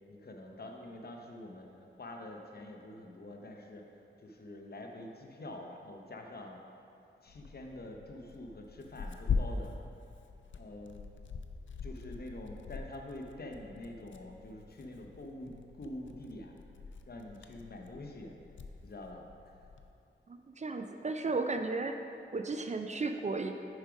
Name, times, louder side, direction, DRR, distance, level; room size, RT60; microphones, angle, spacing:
voice 1, 0.1-6.6 7.2-9.7 10.5-11.1 11.8-16.6 17.1-18.4 18.8-19.7, left 1 dB, 50° left, 2 dB, 0.8 m, -46 dB
Tearing, 7.3-19.9, left 5 dB, 75° left, 0.5 m, -42 dB
voice 2, 20.3-22.0 22.3-23.5, right 3 dB, 35° right, 6 dB, 0.4 m, -34 dB
6.3 x 5.0 x 5.0 m, 2.7 s
cardioid pair, 60°, 20 cm